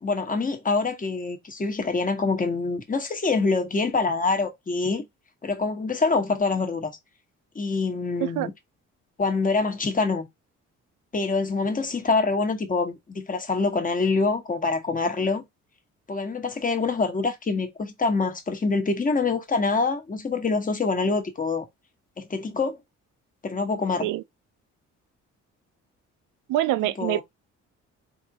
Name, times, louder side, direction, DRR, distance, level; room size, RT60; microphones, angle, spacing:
voice 1, 0.0-5.0 5.4-6.9 7.5-8.5 9.2-10.3 11.1-15.4 16.1-21.7 22.2-22.8 23.4-24.1 27.0-27.2, left 4 dB, 25° left, 1.1 m, -25 dB
voice 2, 26.5-27.2, right 14 dB, 90° right, 0.5 m, -25 dB
3.5 x 2.6 x 4.0 m
cardioid pair, 90°, 30 cm